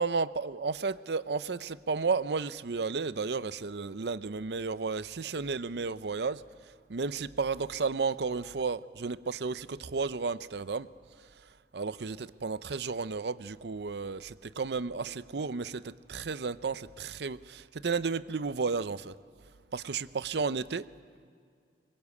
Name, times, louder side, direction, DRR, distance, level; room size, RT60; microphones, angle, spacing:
voice 1, 0.0-6.4 6.9-10.9 11.7-19.1 19.7-20.9, right 4 dB, 70° right, 15 dB, 0.6 m, -33 dB
26.0 x 22.5 x 8.4 m, 2.1 s
head